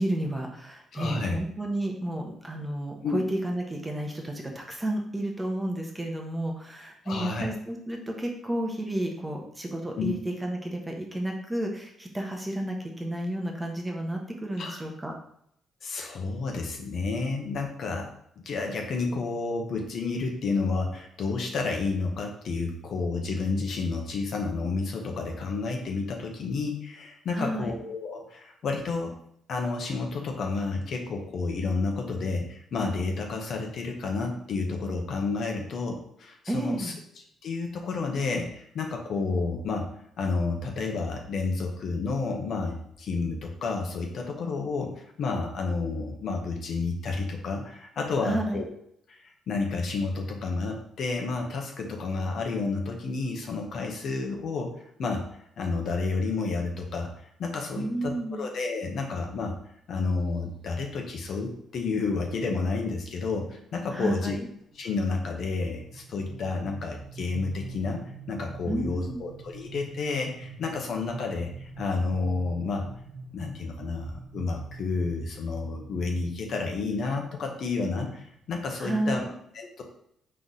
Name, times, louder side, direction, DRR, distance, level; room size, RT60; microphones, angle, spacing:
voice 1, 0.0-15.1 27.3-27.7 36.5-36.9 48.2-48.6 57.7-58.4 63.9-64.5 68.7-69.2 78.8-79.3, right 1 dB, 10° right, 1 dB, 1.0 m, -31 dB
voice 2, 0.9-1.4 3.0-3.2 7.0-7.5 10.0-10.1 14.6-14.8 15.8-18.1 18.4-29.1 29.5-36.9 37.4-39.9 40.2-44.9 45.2-48.6 49.1-54.7 55.0-55.2 55.6-57.1 57.4-59.5 59.9-64.4 64.7-68.0 68.3-72.9 73.3-79.2 79.5-79.8, left 4 dB, 65° left, 2 dB, 1.0 m, -30 dB
sound 1, 60.1-60.3 61.2-61.3 61.7-61.8 62.1-62.4 62.8-79.2, right 4 dB, 70° right, 1.1 m, -46 dB
4.0 x 3.3 x 3.9 m, 0.70 s
cardioid pair, 90°, 0 cm